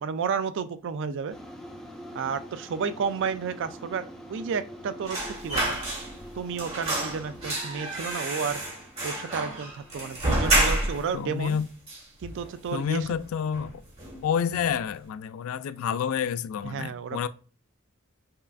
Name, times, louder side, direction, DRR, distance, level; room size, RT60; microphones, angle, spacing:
voice 1, 0.0-1.4 2.1-5.8 6.4-8.6 9.0-11.6 12.2-13.1 16.6-17.3, right 6 dB, 60° right, 0.4 m, -32 dB
sound 1, 1.3-9.9, equal, 5° left, 0.9 m, -45 dB
sound 2, 5.1-6.3 6.6-11.1 11.5-11.6 11.9-12.7 13.0-13.2 13.5-14.2 14.5-14.7, right 1 dB, 30° right, 1.4 m, -29 dB
voice 2, 11.1-11.7 12.7-13.7 14.2-17.3, left 7 dB, 80° left, 0.3 m, -29 dB
5.4 x 2.5 x 2.3 m
head